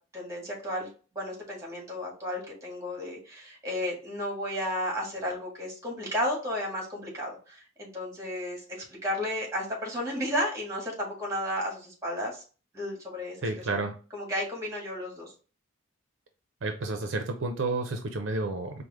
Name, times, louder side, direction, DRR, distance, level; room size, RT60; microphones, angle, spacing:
voice 1, 0.1-0.9 1.1-8.6 9.0-12.4 12.7-13.4 13.7-13.8 14.1-15.3, left 1 dB, 15° right, -1 dB, 1.5 m, -33 dB
voice 2, 13.4-14.0 16.6-18.8, right 3 dB, 65° right, 5 dB, 0.5 m, -31 dB
4.7 x 2.1 x 3.4 m, 0.36 s
head